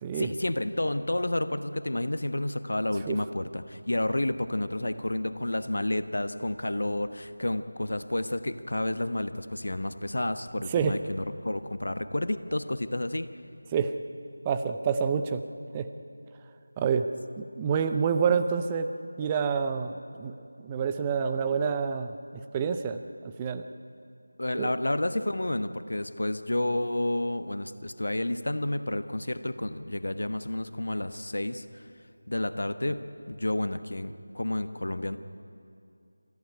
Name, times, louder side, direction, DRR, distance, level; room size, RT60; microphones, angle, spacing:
voice 1, 0.2-13.3 24.4-31.8 32.3-35.2, left 1 dB, 60° left, 11 dB, 1.2 m, -30 dB
voice 2, 14.4-15.4 15.7-15.9 16.8-17.1 17.4-18.9 19.2-20.3 20.6-23.6 24.6-24.7, right 6 dB, 15° right, 8 dB, 0.6 m, -28 dB
26.0 x 14.5 x 10.0 m, 2.5 s
figure-of-eight pair, 165°, 0 cm